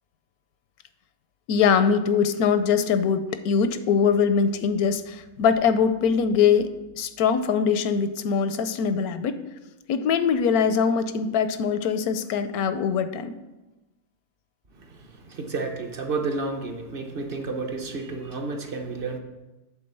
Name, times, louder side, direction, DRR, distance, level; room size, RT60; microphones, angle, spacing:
voice 1, 1.5-9.4 9.9-13.3, left 6 dB, 85° left, 1.1 m, -22 dB
voice 2, 14.8-19.2, right 3 dB, 45° right, 0.8 m, -31 dB
8.5 x 3.8 x 6.7 m
omnidirectional pair, 1.6 m